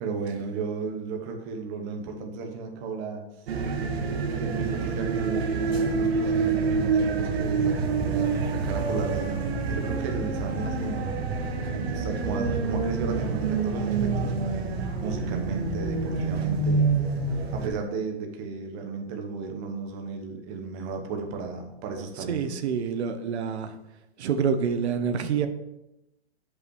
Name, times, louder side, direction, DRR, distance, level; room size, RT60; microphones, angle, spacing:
voice 1, 0.0-3.2 4.3-11.4 11.7-14.3 15.0-16.9 17.5-22.6, right 4 dB, 25° right, 3 dB, 0.9 m, -34 dB
sound 1, 3.5-17.7, right 4 dB, 70° right, 1.5 m, -27 dB
voice 2, 22.3-23.7 24.2-25.5, right 6 dB, 85° right, 9 dB, 0.9 m, -27 dB
7.9 x 5.5 x 4.7 m, 0.89 s
hypercardioid pair, 165°, 32 cm